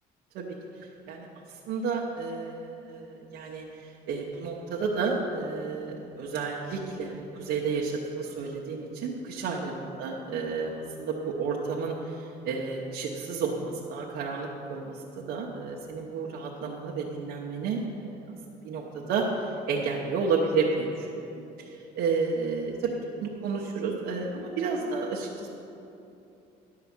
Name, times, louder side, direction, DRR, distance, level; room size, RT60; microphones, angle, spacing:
voice 1, 1.1-18.2 18.6-25.5, right 4 dB, 80° right, -3 dB, 0.9 m, -31 dB
11.5 x 4.8 x 7.2 m, 2.8 s
cardioid pair, 110°, 17 cm